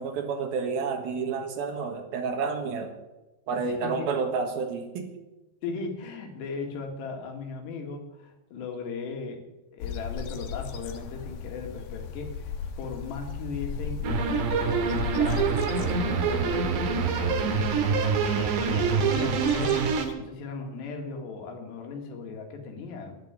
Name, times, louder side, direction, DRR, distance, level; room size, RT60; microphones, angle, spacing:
voice 1, 0.0-2.9 3.5-5.1, right 5 dB, 70° right, 5 dB, 3.2 m, -30 dB
voice 2, 5.6-9.4 9.7-14.1 14.4-19.9 20.2-23.2, left 4 dB, 85° left, 3 dB, 4.2 m, -37 dB
sound 1, 9.8-20.1, left 7 dB, 65° left, 2.5 m, -37 dB
sound 2, 14.0-20.1, right 6 dB, 90° right, 3.9 m, -25 dB
11.0 x 10.5 x 9.6 m, 1.0 s
omnidirectional pair, 4.8 m